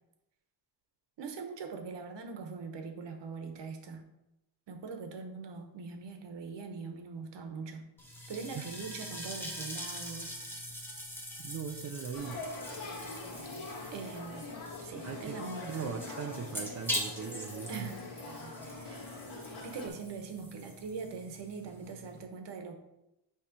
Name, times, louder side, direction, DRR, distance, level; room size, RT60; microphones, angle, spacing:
voice 1, 1.2-4.0 4.7-7.9 8.3-10.4 13.9-14.5 14.8-16.0 17.7-18.0 18.6-19.0 19.6-22.7, right 5 dB, 65° right, 5 dB, 1.1 m, -42 dB
sound 1, 8.0-22.2, equal, 5° left, 1.1 m, -43 dB
voice 2, 11.4-12.4 15.0-17.9, right 7 dB, 35° right, 6 dB, 0.4 m, -40 dB
Male speech man speaking / Child speech kid speaking / Conversation, 12.1-19.9, left 2 dB, 50° left, 1.9 m, -43 dB
8.5 x 3.2 x 5.2 m, 0.91 s
wide cardioid pair, 170°, 46 cm